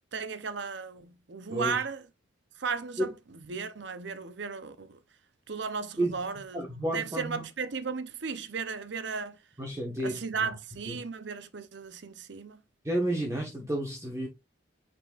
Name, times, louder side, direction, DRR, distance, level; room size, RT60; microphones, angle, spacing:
voice 1, 0.1-2.1 2.6-3.1 3.5-5.0 5.5-6.6 6.9-9.4 10.0-12.6, right 5 dB, 65° right, 0.7 m, -35 dB
voice 2, 1.5-1.8 3.0-3.1 6.0-6.2 6.5-7.4 9.6-10.5 10.9-11.0 12.8-14.3, right 1 dB, 15° right, 1.3 m, -31 dB
9.0 x 4.2 x 2.4 m
head